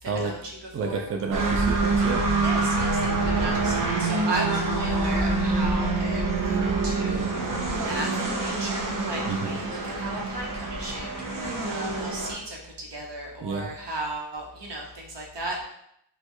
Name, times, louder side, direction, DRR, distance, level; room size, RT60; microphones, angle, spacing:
voice 1, 0.0-0.5 0.8-1.1 2.4-15.6, right 2 dB, 70° right, -1 dB, 1.0 m, -35 dB
voice 2, 0.7-2.3 9.3-9.6 13.4-13.7, right 4 dB, 30° right, 3 dB, 0.5 m, -30 dB
sound 1, 1.3-12.3, right 3 dB, 50° right, 0.8 m, -26 dB
4.1 x 2.3 x 3.1 m, 0.75 s
cardioid pair, 50°, 43 cm